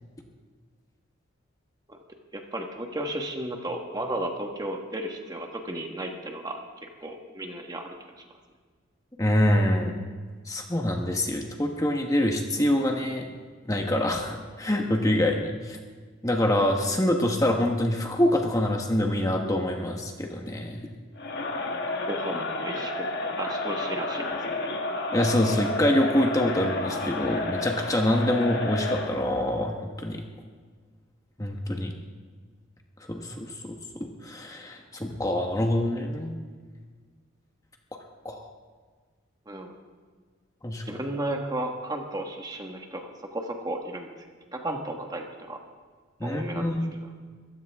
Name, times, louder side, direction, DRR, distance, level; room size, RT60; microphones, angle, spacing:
voice 1, 2.3-6.6 7.0-7.9 22.1-24.4 39.5-39.7 40.8-44.1 44.5-45.6 46.2-46.7, right 1 dB, 20° right, 2 dB, 1.5 m, -34 dB
voice 2, 9.2-10.0 10.5-13.3 13.7-15.8 16.2-20.9 25.1-30.2 31.4-31.9 33.1-36.4 38.2-38.5 40.6-40.8 46.2-46.9, left 1 dB, 15° left, 2 dB, 1.2 m, -25 dB
Crowd, 21.2-29.2, left 2 dB, 50° left, 1.4 m, -31 dB
23.0 x 15.5 x 3.6 m, 1.6 s
head